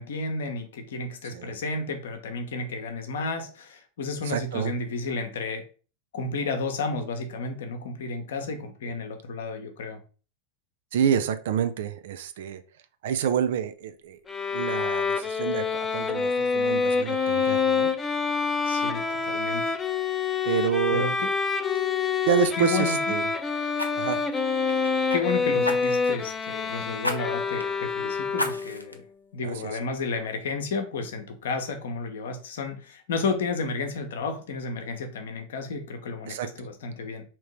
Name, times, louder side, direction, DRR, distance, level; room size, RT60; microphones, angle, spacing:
voice 1, 0.0-5.6 6.1-10.0 18.6-19.7 20.9-21.3 22.6-23.2 25.1-29.0 29.3-37.2, left 4 dB, 60° left, 6 dB, 0.8 m, -32 dB
voice 2, 4.3-4.7 10.9-12.6 13.0-14.2 14.5-15.7 15.9-17.9 20.4-21.0 22.3-23.3 23.9-24.2 29.4-29.6 29.8-29.9 36.3-36.5, right 8 dB, 55° right, 9 dB, 0.4 m, -28 dB
Bowed string instrument, 14.3-28.8, left 5 dB, 20° left, 0.4 m, -27 dB
Fire, 21.1-21.3 21.6-21.8 23.7-25.2 25.6-26.2 27.0-27.2 27.6-27.7 28.3-29.0 29.5-29.6, left 1 dB, 85° left, 0.6 m, -32 dB
3.7 x 3.0 x 4.6 m, 0.37 s
figure-of-eight pair, 90°, 0 cm